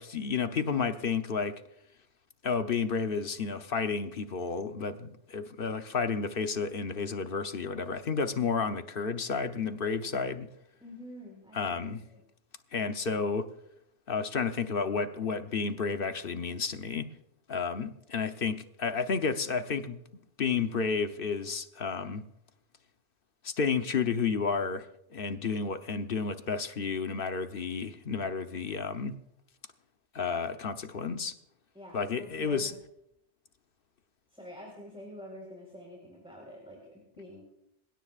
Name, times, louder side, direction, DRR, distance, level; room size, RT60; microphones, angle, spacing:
voice 1, 0.0-1.6 2.4-10.5 11.5-12.0 12.7-13.5 14.1-17.1 17.5-20.0 20.4-22.2 23.4-24.9 25.1-29.1 30.1-31.3 31.9-32.7, left 5 dB, 55° left, 1.0 m, -31 dB
voice 2, 10.8-11.7 12.1-12.2 31.7-32.7 34.3-37.4, equal, 5° right, 4.4 m, -47 dB
27.5 x 16.5 x 2.5 m
omnidirectional pair, 1.2 m